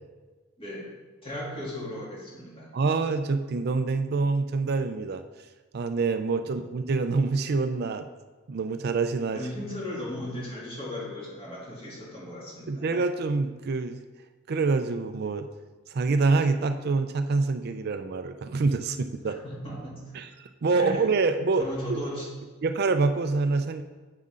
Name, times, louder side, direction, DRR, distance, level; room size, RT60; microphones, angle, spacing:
voice 1, 0.6-0.9 1.2-2.7 6.4-6.5 9.3-12.8 19.2-20.0 20.7-21.1 21.6-22.3, left 1 dB, 30° left, -6 dB, 2.9 m, -36 dB
voice 2, 2.7-5.2 5.7-8.1 8.5-9.5 12.7-14.0 14.5-15.5 15.9-19.4 20.1-22.0 22.6-23.8, right 3 dB, 55° right, 9 dB, 0.4 m, -26 dB
9.5 x 7.5 x 3.8 m, 1.3 s
head